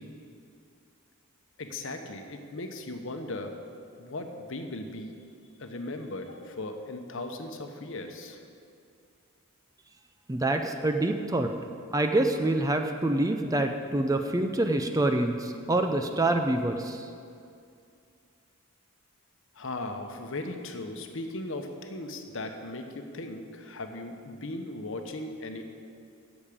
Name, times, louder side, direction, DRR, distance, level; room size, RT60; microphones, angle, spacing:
voice 1, 1.6-3.5 4.0-5.1 5.6-8.4 19.5-25.6, left 2 dB, 60° left, 5 dB, 0.9 m, -37 dB
voice 2, 10.3-11.5 11.9-17.1, right 2 dB, 15° right, 6 dB, 0.4 m, -26 dB
8.5 x 7.2 x 8.6 m, 2.4 s
head